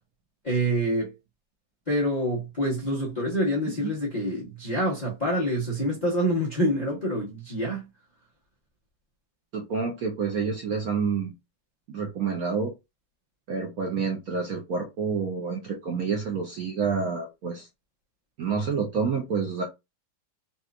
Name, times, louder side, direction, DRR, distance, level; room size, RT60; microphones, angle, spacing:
voice 1, 0.4-1.1 1.9-7.9, equal, 35° left, 0.7 m, -26 dB
voice 2, 9.5-11.3 11.9-12.7 13.5-17.7 18.4-19.6, right 5 dB, 65° right, 0.9 m, -28 dB
4.2 x 2.4 x 2.4 m
omnidirectional pair, 2.1 m